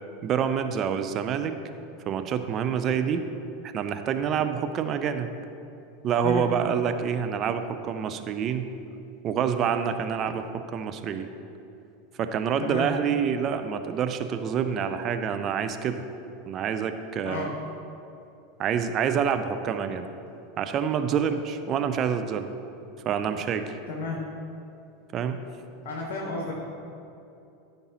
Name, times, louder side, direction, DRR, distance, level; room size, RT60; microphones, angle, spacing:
voice 1, 0.2-1.6 2.1-3.2 3.7-5.3 6.0-8.7 9.2-11.3 12.2-16.0 16.5-17.5 18.6-20.0 20.6-22.5 23.1-23.7 25.1-25.4, right 7 dB, 35° right, 8 dB, 0.5 m, -27 dB
voice 2, 23.9-24.2 25.8-26.5, left 3 dB, 55° left, -1 dB, 1.2 m, -32 dB
13.5 x 5.3 x 3.0 m, 2.8 s
figure-of-eight pair, 85°, 0 cm